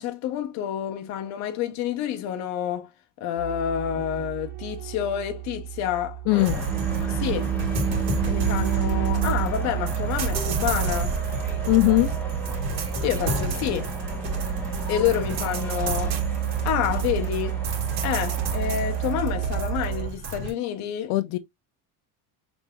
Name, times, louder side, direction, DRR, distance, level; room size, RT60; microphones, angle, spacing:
voice 1, 0.0-2.9 3.2-6.6 7.0-7.5 8.2-11.2 13.0-13.9 14.9-16.2 16.6-17.6 18.0-21.1, left 10 dB, 45° left, 0.7 m, -28 dB
sound 1, 3.4-20.1, right 12 dB, 25° right, 0.4 m, -30 dB
voice 2, 6.3-6.6 11.7-12.1 21.1-21.4, left 19 dB, 85° left, 0.5 m, -20 dB
sound 2, 6.3-19.2, left 1 dB, 5° left, 0.9 m, -38 dB
sound 3, 6.4-20.5, right 3 dB, 80° right, 1.7 m, -31 dB
5.3 x 3.4 x 2.3 m
cardioid pair, 175°, 38 cm